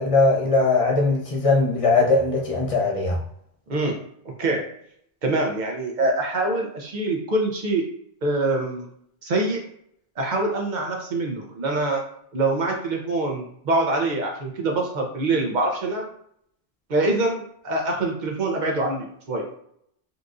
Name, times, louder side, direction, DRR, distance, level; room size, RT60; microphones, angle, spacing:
voice 1, 0.0-3.2, left 3 dB, 40° left, -2 dB, 0.7 m, -20 dB
voice 2, 3.7-4.0 4.4-4.6 5.2-7.8 8.2-8.9 9.2-9.6 10.2-12.0 12.3-16.1 16.9-19.4, right 2 dB, 50° right, 1 dB, 0.7 m, -24 dB
4.0 x 2.4 x 2.5 m, 0.68 s
omnidirectional pair, 1.0 m